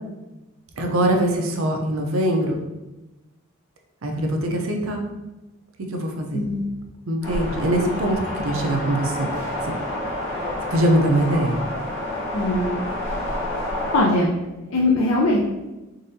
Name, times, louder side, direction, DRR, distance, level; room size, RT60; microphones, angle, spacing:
voice 1, 0.8-2.6 4.0-5.0 5.9-6.4 7.1-9.3 10.7-11.6, right 1 dB, 85° right, 2 dB, 0.7 m, -22 dB
voice 2, 6.3-6.7 12.3-12.8 13.9-14.3 14.7-15.4, left 2 dB, 80° left, -3 dB, 0.6 m, -20 dB
sound 1, 7.2-14.0, left 1 dB, 65° left, 1.2 m, -29 dB
3.9 x 3.7 x 2.7 m, 1.0 s
head